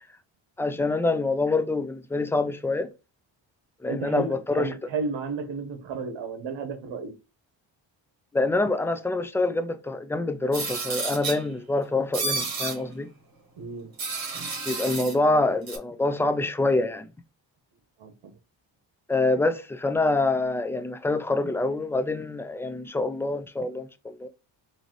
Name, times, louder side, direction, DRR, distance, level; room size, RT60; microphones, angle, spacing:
voice 1, 0.6-2.9 3.8-4.7 8.3-13.1 14.7-17.1 19.1-24.3, left 2 dB, 5° left, 0.4 m, -26 dB
voice 2, 3.9-7.1 13.6-13.9 18.0-18.3, right 4 dB, 70° right, 1.1 m, -33 dB
sound 1, 10.5-11.4 12.1-12.8 14.0-15.1 15.7-15.8, right 4 dB, 50° right, 1.7 m, -30 dB
3.9 x 2.8 x 3.1 m
cardioid pair, 70°, 46 cm